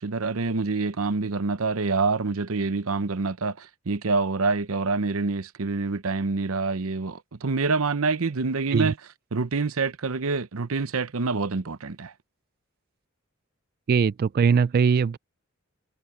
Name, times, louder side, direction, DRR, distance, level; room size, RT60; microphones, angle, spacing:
voice 1, 0.0-9.0 9.3-12.1, right 4 dB, 70° right, 0.8 m, -26 dB
voice 2, 13.9-15.2, right 6 dB, 45° right, 0.3 m, -21 dB
head